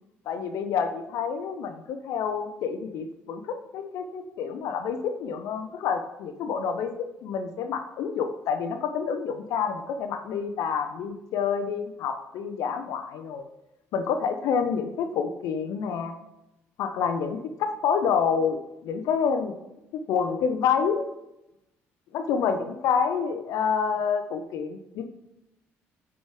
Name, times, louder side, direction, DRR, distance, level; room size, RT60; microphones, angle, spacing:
voice 1, 0.3-13.5 13.9-16.1 16.8-19.5 19.9-21.1 22.1-25.1, left 6 dB, 75° left, 8 dB, 0.7 m, -28 dB
7.1 x 4.9 x 4.8 m, 0.89 s
supercardioid pair, 75°, 6 cm